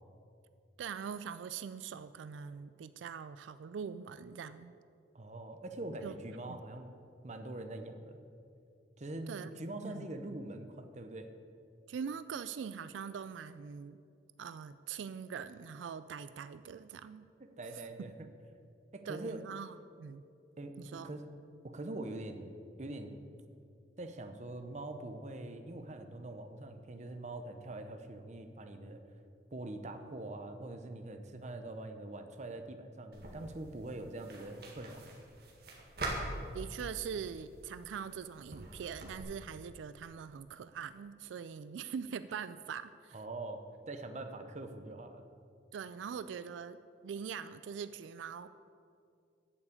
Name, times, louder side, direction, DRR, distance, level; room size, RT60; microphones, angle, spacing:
voice 1, 0.8-4.7 6.0-6.2 6.5-6.6 9.3-9.5 9.8-10.1 11.9-14.0 14.4-17.3 18.0-18.1 19.1-20.2 20.8-21.1 36.5-43.2 45.7-46.8 47.0-48.5, right 7 dB, 90° right, 13 dB, 0.3 m, -42 dB
voice 2, 5.1-6.9 7.2-8.2 9.0-11.3 17.6-18.3 18.9-19.4 20.6-21.3 21.6-22.5 22.8-23.2 24.0-29.0 29.5-35.2 43.1-45.2, right 2 dB, 40° right, 7 dB, 0.8 m, -43 dB
sound 1, 33.1-39.2, right 1 dB, 60° right, 1.9 m, -44 dB
8.6 x 7.2 x 8.2 m, 2.5 s
head